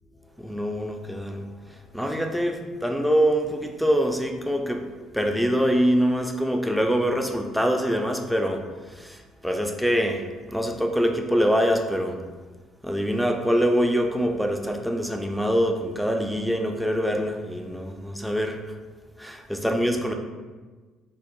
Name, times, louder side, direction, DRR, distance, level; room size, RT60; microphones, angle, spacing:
voice 1, 0.3-4.8 5.1-12.2 12.8-18.7 19.2-20.1, equal, ahead, 3 dB, 0.3 m, -24 dB
2.5 x 2.0 x 2.8 m, 1.3 s
figure-of-eight pair, 50°, 0 cm